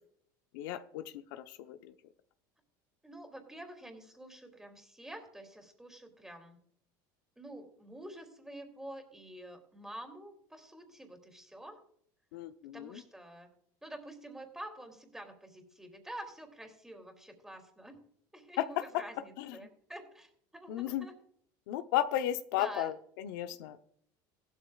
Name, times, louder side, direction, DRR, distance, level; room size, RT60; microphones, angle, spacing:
voice 1, 0.5-1.9 12.3-13.0 18.6-19.0 19.4-19.5 20.7-21.1 21.7-23.8, left 12 dB, 80° left, 9 dB, 0.8 m, -34 dB
voice 2, 3.0-6.6 7.4-11.8 12.7-13.5 13.8-18.0 18.3-21.1 22.5-22.9, right 1 dB, 5° right, 4 dB, 2.8 m, -48 dB
15.5 x 13.0 x 2.4 m, 0.63 s
supercardioid pair, 115°, 11 cm